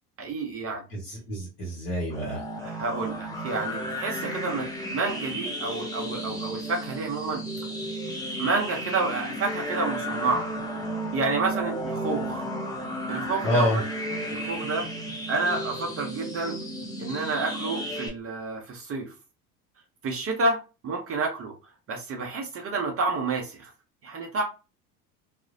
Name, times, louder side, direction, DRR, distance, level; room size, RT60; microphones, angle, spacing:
voice 1, 0.2-0.8 2.6-4.7 4.9-7.4 8.4-10.5 11.1-12.4 13.1-13.8 14.3-14.9 15.3-16.6 17.0-19.1 20.0-21.5 21.9-23.7 24.0-24.4, right 3 dB, 30° right, 0.7 m, -29 dB
voice 2, 0.9-2.4 13.4-13.8, left 1 dB, 55° left, 1.3 m, -27 dB
sound 1, 2.1-18.1, equal, 10° left, 0.6 m, -33 dB
2.4 x 2.0 x 2.5 m
hypercardioid pair, 70°, 47 cm